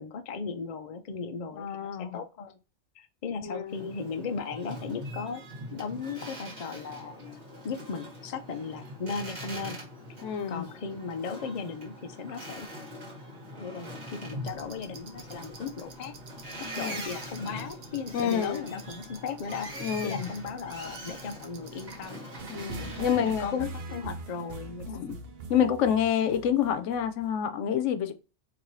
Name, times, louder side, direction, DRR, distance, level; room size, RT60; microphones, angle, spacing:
voice 1, 0.0-2.6 3.0-5.4 5.7-7.2 7.6-9.8 10.5-12.7 13.6-16.1 16.8-22.3 22.8-25.0, left 5 dB, 50° left, 0.5 m, -37 dB
voice 2, 1.5-2.2 3.4-3.9 10.2-10.6 16.8-17.0 18.1-18.6 19.8-20.3 22.5-23.7 24.9-25.2 25.5-28.1, left 9 dB, 90° left, 0.9 m, -28 dB
Boat Water vehicle, 3.7-23.5, equal, 40° right, 1.5 m, -43 dB
sound 1, 14.4-22.1, right 4 dB, 85° right, 1.2 m, -51 dB
sound 2, 22.4-27.4, right 3 dB, 60° right, 0.8 m, -41 dB
4.7 x 2.9 x 2.6 m
omnidirectional pair, 1.2 m